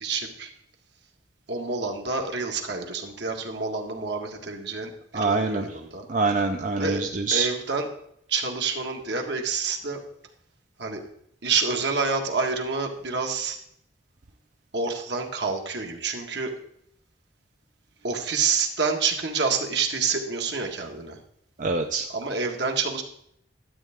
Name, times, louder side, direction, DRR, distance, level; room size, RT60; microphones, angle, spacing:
voice 1, 0.0-0.5 1.5-6.0 6.8-7.0 7.3-7.9 8.3-10.0 10.8-11.0 11.4-13.6 14.7-16.5 18.0-21.2 22.1-23.0, right 4 dB, 65° right, 3 dB, 1.6 m, -28 dB
voice 2, 5.1-5.7 6.1-7.5 21.6-22.1, right 3 dB, 45° right, 5 dB, 0.6 m, -25 dB
12.5 x 8.5 x 3.6 m, 0.71 s
head